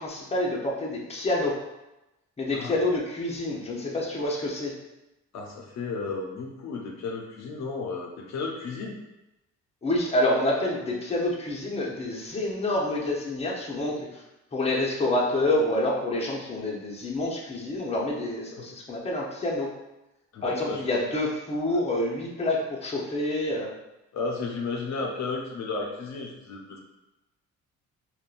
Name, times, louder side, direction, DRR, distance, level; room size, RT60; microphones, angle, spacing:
voice 1, 0.0-1.6 2.4-4.7 9.8-14.2 14.5-19.7 20.4-23.7, left 1 dB, 20° left, -3 dB, 0.7 m, -27 dB
voice 2, 5.3-9.0 18.6-18.7 20.3-20.8 24.1-26.8, left 4 dB, 65° left, 0 dB, 0.6 m, -33 dB
3.6 x 2.2 x 2.4 m, 0.95 s
cardioid pair, 90°, 30 cm